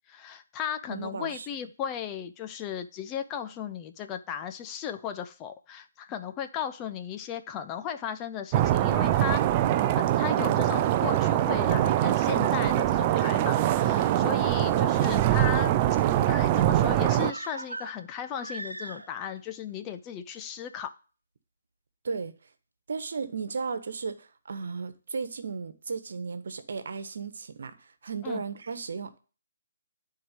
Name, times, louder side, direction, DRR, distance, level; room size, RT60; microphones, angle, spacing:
voice 1, 0.1-9.4 9.9-15.8 16.3-20.9 28.2-28.4, left 8 dB, 20° left, 0.8 m, -36 dB
voice 2, 0.9-1.5 22.0-22.3 22.9-27.7 28.0-29.2, right 5 dB, 60° right, 1.4 m, -35 dB
sound 1, 8.5-17.3, right 12 dB, 30° right, 0.6 m, -23 dB
sound 2, 17.2-19.4 19.7-19.8, right 2 dB, 80° right, 1.0 m, -40 dB
11.0 x 4.8 x 7.8 m
figure-of-eight pair, 135°, 0 cm